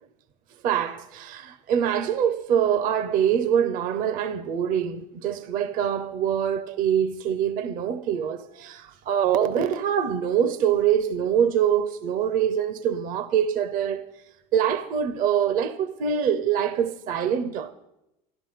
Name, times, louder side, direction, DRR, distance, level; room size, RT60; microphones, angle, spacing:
voice 1, 0.6-14.0 14.5-17.7, right 8 dB, 55° right, 0.8 m, -24 dB
13.0 x 12.0 x 5.8 m
supercardioid pair, 115°, 17 cm